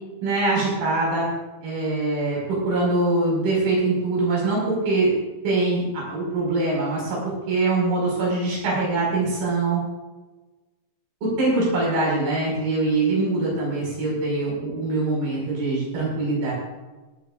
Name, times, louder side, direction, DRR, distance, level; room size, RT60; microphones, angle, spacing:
voice 1, 0.2-1.3 1.6-5.1 5.4-9.8 11.2-16.5, right 2 dB, 75° right, -5 dB, 7.3 m, -23 dB
18.5 x 14.5 x 2.6 m, 1.2 s
omnidirectional pair, 4.2 m